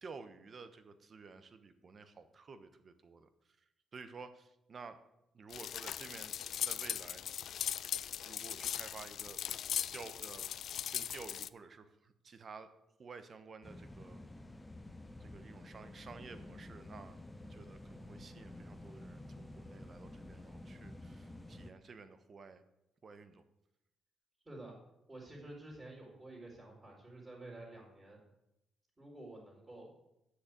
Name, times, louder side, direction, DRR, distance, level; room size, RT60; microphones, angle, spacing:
voice 1, 0.0-3.3 3.9-5.0 5.3-6.3 6.6-7.6 8.2-9.4 9.9-10.5 10.9-12.7 13.0-14.2 15.2-17.2 17.5-22.6 23.0-23.4, right 4 dB, 45° right, 11 dB, 1.1 m, -52 dB
sound 1, 5.5-11.5, left 10 dB, 65° left, 0.3 m, -39 dB
sound 2, 13.6-21.7, left 1 dB, 10° left, 0.9 m, -50 dB
voice 2, 25.1-28.2 29.0-29.9, right 2 dB, 25° right, -4 dB, 4.1 m, -50 dB
8.3 x 6.6 x 8.1 m, 0.88 s
cardioid pair, 90°, 0 cm